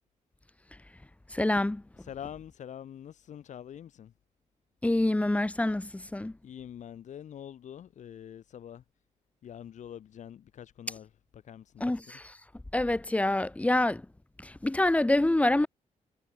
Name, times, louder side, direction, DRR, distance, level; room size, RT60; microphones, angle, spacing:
voice 1, 1.3-1.8 4.8-6.3 11.8-12.4 12.7-14.0 14.4-15.7, left 1 dB, 10° left, 4.7 m, -26 dB
voice 2, 2.1-4.1 6.4-8.8 9.4-11.1 11.3-12.2, left 9 dB, 70° left, 7.0 m, -45 dB
cardioid pair, 135°, 13 cm